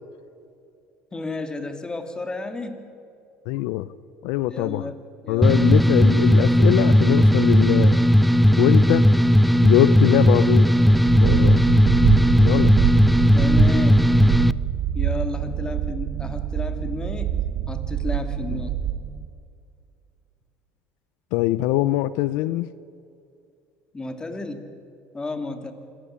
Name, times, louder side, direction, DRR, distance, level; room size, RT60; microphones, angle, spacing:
voice 1, 1.1-2.8 4.4-5.9 13.3-14.1 14.9-17.4 17.7-18.8 23.9-24.7 25.1-25.7, left 3 dB, 15° left, 7 dB, 2.5 m, -32 dB
voice 2, 3.5-3.9 4.2-4.9 5.3-8.0 8.6-9.1 9.6-10.7 11.2-11.6 12.4-12.7 18.5-18.6 21.3-22.7, left 15 dB, 80° left, 16 dB, 0.6 m, -22 dB
sound 1, 5.4-14.5, equal, ahead, 0.5 m, -16 dB
sound 2, 10.9-19.3, right 10 dB, 55° right, 1.6 m, -25 dB
26.0 x 15.0 x 9.8 m, 2.4 s
supercardioid pair, 110°, 5 cm